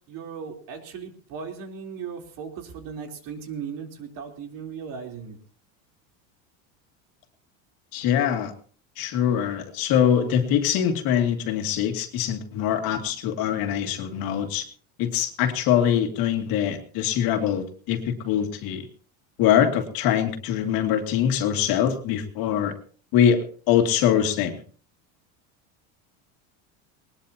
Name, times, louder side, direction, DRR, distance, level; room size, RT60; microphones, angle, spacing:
voice 1, 0.1-5.4, right 6 dB, 55° right, 4 dB, 3.8 m, -37 dB
voice 2, 7.9-8.5 9.0-14.7 15.0-18.9 19.4-22.7 23.1-24.6, left 9 dB, 60° left, 5 dB, 2.5 m, -23 dB
20.5 x 20.0 x 2.9 m, 0.43 s
supercardioid pair, 135°, 40 cm